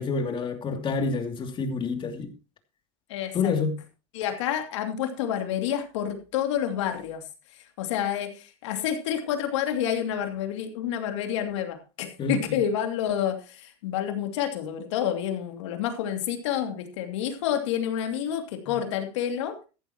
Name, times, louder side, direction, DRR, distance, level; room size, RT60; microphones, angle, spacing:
voice 1, 0.0-2.3 3.3-3.8 12.2-12.4, left 4 dB, 35° left, 2.8 m, -27 dB
voice 2, 3.1-3.5 4.1-7.2 7.8-19.5, left 9 dB, 90° left, 2.8 m, -29 dB
14.5 x 11.5 x 3.0 m
supercardioid pair, 120°, 15 cm